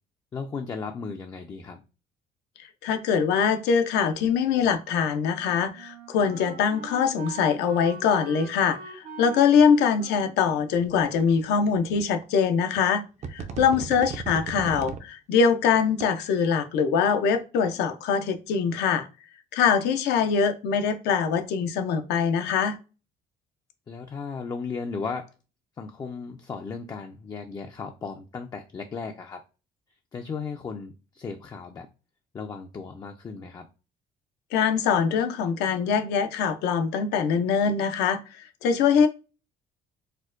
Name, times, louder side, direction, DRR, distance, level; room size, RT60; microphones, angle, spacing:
voice 1, 0.3-1.8 13.5-13.6 23.9-25.3 25.8-29.4 30.1-31.9 32.3-33.7, left 5 dB, 25° left, 0.3 m, -36 dB
voice 2, 2.8-13.0 13.3-19.1 19.5-22.8 34.5-38.2 38.6-39.1, left 6 dB, 80° left, 0.5 m, -23 dB
Wind instrument woodwind instrument, 5.2-12.0, right 3 dB, 75° right, 1.0 m, -43 dB
sound 1, 11.2-11.3 12.2-12.3 12.8-13.0 13.2-15.0 15.7-16.0, right 6 dB, 45° right, 0.5 m, -35 dB
4.3 x 2.1 x 2.4 m
cardioid pair, 110°, 17 cm